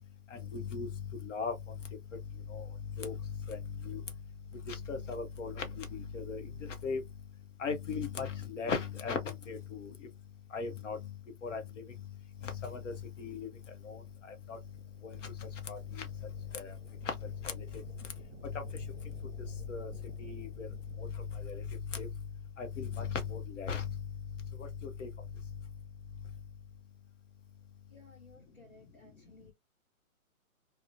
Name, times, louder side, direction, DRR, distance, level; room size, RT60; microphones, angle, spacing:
voice 1, 0.5-0.9 1.2-1.5 2.5-2.6 3.0-3.1 3.5-3.6 3.9-4.0 4.7-6.4 6.8-7.0 7.6-9.2 9.5-9.9 10.5-11.0 11.4-11.6 12.4-12.9 13.2-13.5 13.9-14.0 14.5-14.6 15.0-15.3 15.7-16.1 16.5-16.7 17.1-17.2 17.4-17.5 19.7-19.9 20.2-20.7 21.4-21.6 21.9-22.1 22.6-23.8 25.0-25.1, left 5 dB, 60° left, 0.6 m, -37 dB
sound 1, 13.8-21.9, right 1 dB, 35° right, 0.7 m, -54 dB
voice 2, 27.9-29.5, left 2 dB, 5° left, 0.7 m, -58 dB
2.5 x 2.0 x 2.4 m
hypercardioid pair, 155°, 43 cm